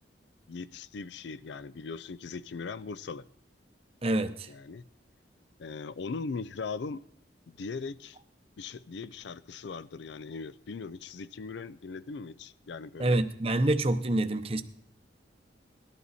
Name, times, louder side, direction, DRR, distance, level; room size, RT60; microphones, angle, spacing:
voice 1, 0.5-3.3 4.5-4.8 5.6-7.0 7.5-8.2 8.6-13.2, left 4 dB, 70° left, 0.4 m, -39 dB
voice 2, 4.0-4.5 13.0-14.6, right 1 dB, 30° right, 0.8 m, -27 dB
19.0 x 12.0 x 4.2 m
head